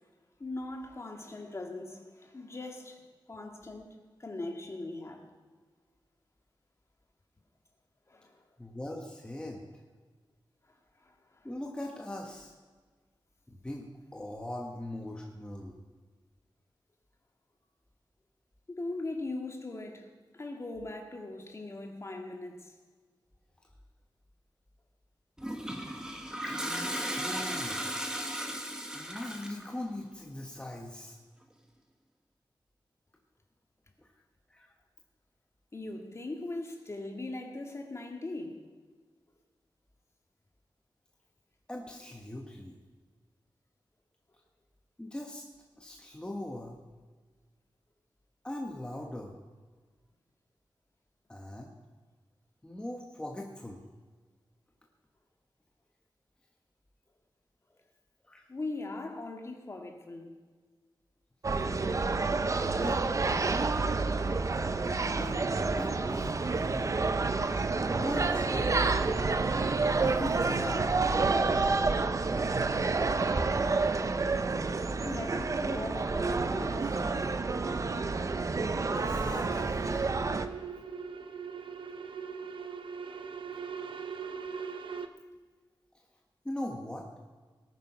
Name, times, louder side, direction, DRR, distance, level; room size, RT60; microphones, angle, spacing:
voice 1, 0.4-3.0 3.3-3.9 4.2-5.3 8.1-8.4 11.0-11.5 18.7-20.1 20.3-22.7 35.7-38.6 58.5-60.3 75.0-77.1, left 2 dB, 35° left, 3 dB, 1.9 m, -40 dB
voice 2, 8.6-9.7 11.4-12.5 13.5-15.8 26.4-27.8 28.9-31.2 34.0-34.1 34.5-34.7 41.7-42.8 45.0-45.4 45.8-46.8 48.4-49.4 51.3-51.7 52.6-53.8 58.2-58.5 62.7-63.1 65.0-65.4 65.7-67.0 67.9-69.0 69.9-70.9 71.7-72.0 73.5-73.8 78.9-80.1 84.6-84.7 86.4-87.1, left 1 dB, 10° left, 0 dB, 1.3 m, -40 dB
Toilet flush, 25.4-29.7, equal, 10° right, 1.5 m, -36 dB
sound 1, 61.4-80.5, right 3 dB, 40° right, 0.7 m, -29 dB
sound 2, 77.2-85.1, right 6 dB, 85° right, 0.8 m, -43 dB
19.0 x 9.2 x 5.8 m, 1.4 s
wide cardioid pair, 140°, 8 cm